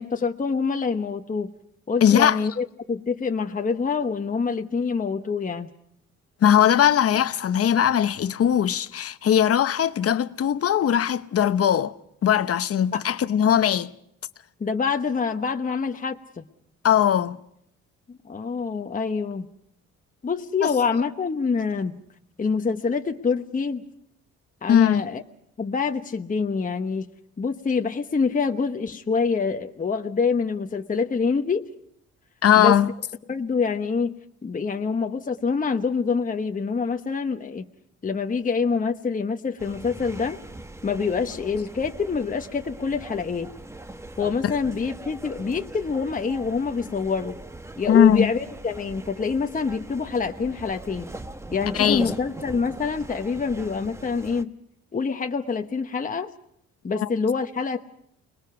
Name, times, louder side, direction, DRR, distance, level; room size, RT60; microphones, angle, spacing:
voice 1, 0.0-1.5 1.9-5.7 12.9-13.0 14.6-16.4 18.1-19.5 20.2-22.0 22.4-23.8 24.6-25.2 25.6-27.1 27.4-31.7 32.5-32.7 33.3-34.1 34.4-37.7 38.0-40.4 40.8-43.5 44.2-47.4 47.8-51.1 51.5-54.5 54.9-56.3 56.8-57.8, left 5 dB, 25° left, 1.1 m, -26 dB
voice 2, 2.0-2.5 6.4-11.9 12.2-13.9 16.8-17.4 20.6-20.8 24.7-25.1 32.4-32.9 44.4-44.5 47.9-48.3 51.7-52.1 56.9-57.1, left 9 dB, 50° left, 0.9 m, -20 dB
sound 1, 39.6-54.4, right 2 dB, 10° right, 1.0 m, -40 dB
29.5 x 20.5 x 5.8 m
cardioid pair, 90°, 30 cm